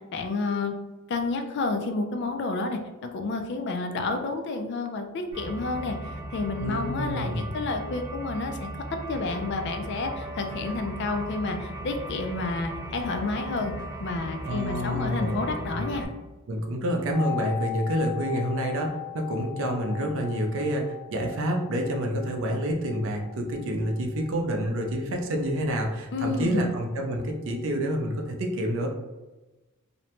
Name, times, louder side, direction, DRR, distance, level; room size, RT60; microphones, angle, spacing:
voice 1, 0.1-0.7 1.1-8.7 9.1-13.7 14.0-16.1 26.1-26.7, left 3 dB, 50° left, 5 dB, 0.3 m, -30 dB
sound 1, 5.3-16.0, right 1 dB, 20° right, 0.8 m, -37 dB
voice 2, 6.6-7.5 14.5-15.5 16.5-28.9, equal, 60° right, 2 dB, 0.5 m, -28 dB
sound 2, 17.1-26.9 27.1-27.2, left 15 dB, 80° left, 0.7 m, -40 dB
2.7 x 2.1 x 2.8 m, 1.1 s
head